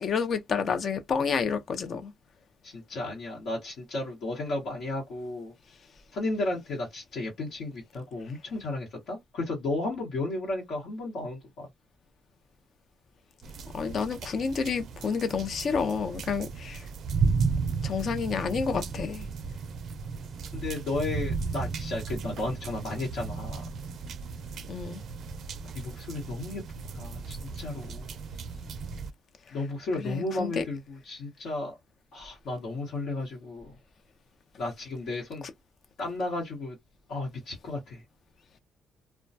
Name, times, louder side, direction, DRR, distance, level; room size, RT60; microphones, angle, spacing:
voice 1, 0.0-2.1 13.7-16.9 17.8-19.3 24.7-25.0 29.5-29.6 30.0-30.6, left 5 dB, 55° left, 0.6 m, -29 dB
voice 2, 2.6-5.5 6.1-11.7 20.5-23.6 25.7-28.1 29.5-31.8 32.1-33.7 34.6-35.5 36.0-36.8 37.1-38.0, left 2 dB, 75° left, 1.1 m, -34 dB
sound 1, 13.4-29.1, right 5 dB, 65° right, 0.4 m, -34 dB
2.2 x 2.1 x 2.6 m
cardioid pair, 90°, 0 cm